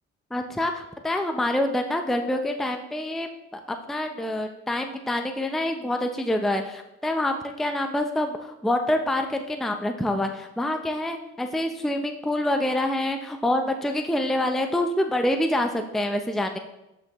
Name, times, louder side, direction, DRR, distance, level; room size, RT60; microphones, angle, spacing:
voice 1, 0.3-16.6, left 1 dB, ahead, 5 dB, 0.6 m, -26 dB
13.0 x 5.7 x 3.0 m, 0.93 s
cardioid pair, 90°, 30 cm